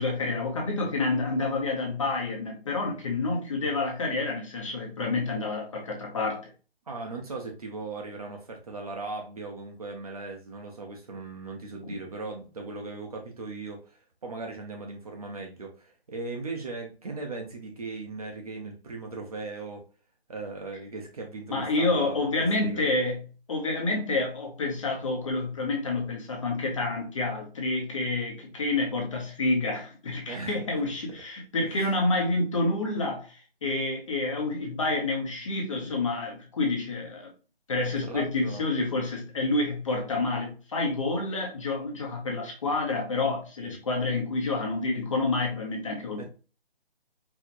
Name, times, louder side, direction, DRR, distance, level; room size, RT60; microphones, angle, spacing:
voice 1, 0.0-6.5 11.8-12.0 21.5-37.3 37.7-46.2, left 2 dB, 30° left, 1.2 m, -28 dB
voice 2, 6.9-19.8 20.3-22.8 30.3-30.6 31.6-31.8 38.1-38.6 43.6-43.7 46.2-46.3, right 3 dB, 35° right, 0.9 m, -38 dB
4.8 x 3.2 x 2.6 m
hypercardioid pair, 165°, 32 cm